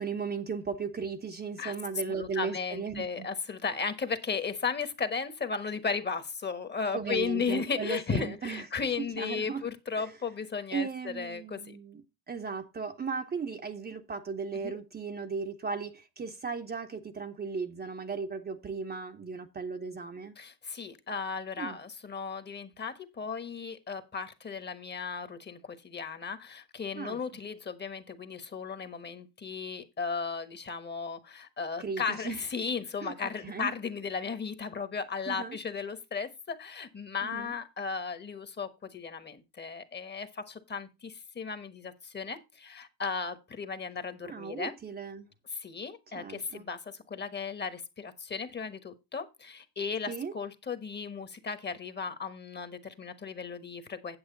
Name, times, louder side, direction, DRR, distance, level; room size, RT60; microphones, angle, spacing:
voice 1, 0.0-3.3 6.9-8.7 9.0-9.6 10.0-10.1 10.7-12.0 12.3-20.3 21.6-21.8 26.9-27.2 31.8-32.4 33.0-33.7 35.3-35.6 37.2-37.5 44.2-45.3 46.1-46.6 50.1-50.3, right 5 dB, 20° right, 0.9 m, -36 dB
voice 2, 2.1-11.8 14.6-14.8 20.4-44.7 45.5-54.2, left 5 dB, 20° left, 1.2 m, -35 dB
9.0 x 7.7 x 3.9 m
supercardioid pair, 110°, 46 cm